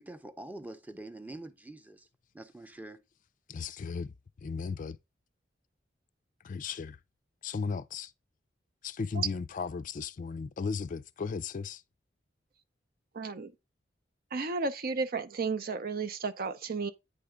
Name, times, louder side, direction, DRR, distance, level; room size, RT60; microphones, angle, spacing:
voice 1, 0.0-2.0 2.3-3.0, right 1 dB, 10° right, 0.7 m, -45 dB
voice 2, 3.5-4.1 4.4-5.0 6.4-7.0 7.4-8.1 8.8-11.8, left 5 dB, 45° left, 0.4 m, -35 dB
voice 3, 13.1-13.5 14.3-16.9, right 4 dB, 55° right, 0.6 m, -33 dB
8.7 x 3.4 x 4.9 m
head